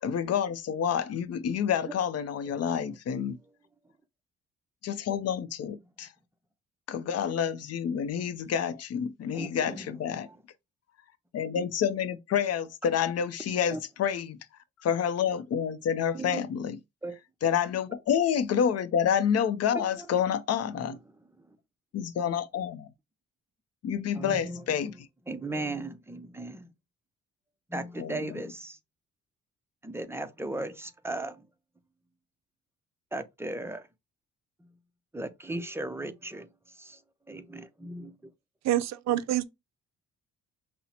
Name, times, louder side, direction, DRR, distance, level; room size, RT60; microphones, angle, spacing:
voice 1, 0.0-3.4 4.8-6.1 6.9-10.3 11.3-14.4 14.8-16.8 17.4-21.0 21.9-22.9 23.8-24.9 28.0-28.2, left 8 dB, 55° left, 0.5 m, -28 dB
voice 2, 2.4-2.8 9.3-9.9 10.2-10.4 13.7-13.8 16.1-16.4 17.0-17.2 19.7-20.1 20.7-21.6 24.1-25.0 25.3-26.7 27.7-28.8 29.8-31.5 33.1-33.9 34.6-34.7 35.1-37.0 37.3-38.2, right 2 dB, 10° right, 0.5 m, -37 dB
voice 3, 38.6-39.4, right 13 dB, 60° right, 0.5 m, -26 dB
5.6 x 2.0 x 2.8 m
cardioid pair, 90°, 30 cm